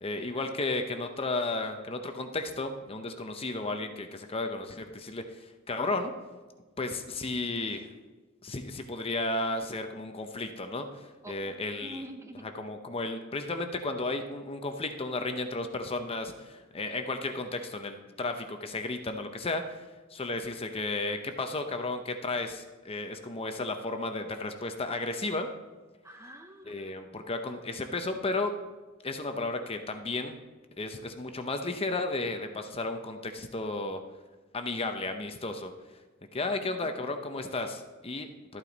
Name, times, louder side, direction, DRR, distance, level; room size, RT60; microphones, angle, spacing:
voice 1, 0.0-6.1 6.8-7.9 8.4-12.0 12.5-19.8 20.1-25.5 26.7-28.5 29.0-30.4 30.8-34.0 34.5-35.7 36.3-38.6, left 2 dB, 30° left, 6 dB, 0.7 m, -33 dB
voice 2, 11.2-12.5 26.0-27.3 36.5-37.1, right 1 dB, 15° right, 6 dB, 0.8 m, -48 dB
13.0 x 8.9 x 4.0 m, 1.3 s
head